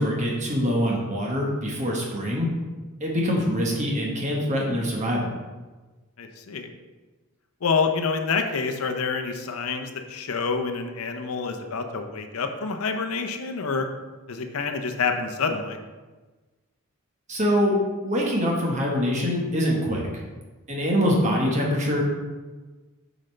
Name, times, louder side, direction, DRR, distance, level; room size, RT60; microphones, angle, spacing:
voice 1, 0.0-2.5 3.0-5.3 17.3-17.8 18.0-20.0 20.7-22.0, equal, 30° right, -2 dB, 1.3 m, -24 dB
voice 2, 6.2-6.7 7.6-13.9 14.3-15.8, left 5 dB, 75° left, 6 dB, 0.7 m, -27 dB
7.7 x 5.1 x 3.3 m, 1.3 s
head